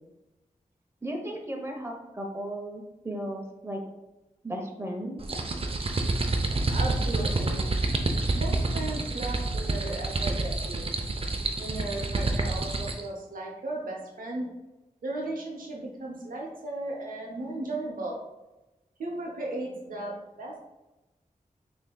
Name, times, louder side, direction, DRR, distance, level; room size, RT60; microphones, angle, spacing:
voice 1, 1.0-3.8 4.4-5.2, right 1 dB, 20° right, 1 dB, 0.8 m, -35 dB
sound 1, 5.2-13.1, right 2 dB, 45° right, 0.5 m, -28 dB
voice 2, 6.7-7.6 8.3-10.9 11.6-14.5 15.0-18.2 19.0-20.6, right 2 dB, 80° right, -1 dB, 0.8 m, -36 dB
6.1 x 2.7 x 2.3 m, 1.0 s
cardioid pair, 40°, 14 cm